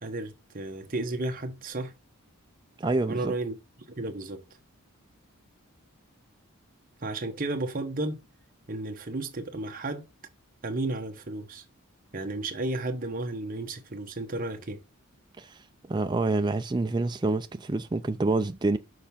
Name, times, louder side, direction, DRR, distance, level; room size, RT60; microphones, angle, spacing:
voice 1, 0.0-1.9 3.1-3.6 3.9-4.4 7.0-8.2 8.7-10.1 10.6-11.6 12.1-14.8, right 2 dB, 40° right, 1.0 m, -33 dB
voice 2, 2.8-3.3 15.4-15.6 15.9-18.8, right 2 dB, 20° right, 0.4 m, -27 dB
6.4 x 3.4 x 5.7 m
head